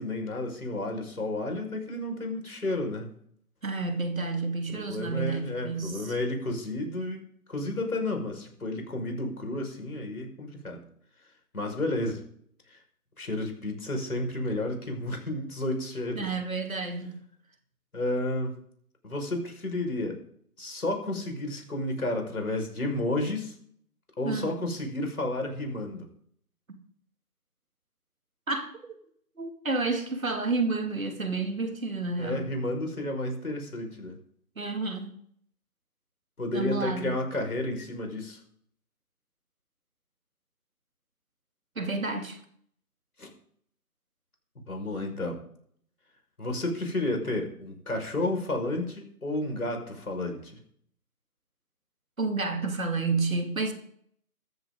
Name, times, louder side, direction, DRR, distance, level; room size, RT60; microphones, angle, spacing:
voice 1, 0.0-3.1 4.7-7.2 7.5-10.8 11.5-12.2 12.7-12.8 13.2-16.4 17.9-18.5 19.0-20.2 20.6-23.5 24.2-26.1 32.2-34.1 36.4-38.4 43.2-43.3 44.7-45.4 46.4-50.6, left 2 dB, 65° left, 5.5 m, -31 dB
voice 2, 3.6-6.1 16.1-17.2 24.2-24.5 28.5-29.0 29.4-32.5 34.6-35.1 36.5-37.1 41.8-42.4 52.2-53.7, right 3 dB, 60° right, 2.6 m, -30 dB
14.5 x 13.5 x 3.9 m
figure-of-eight pair, 180°, 46 cm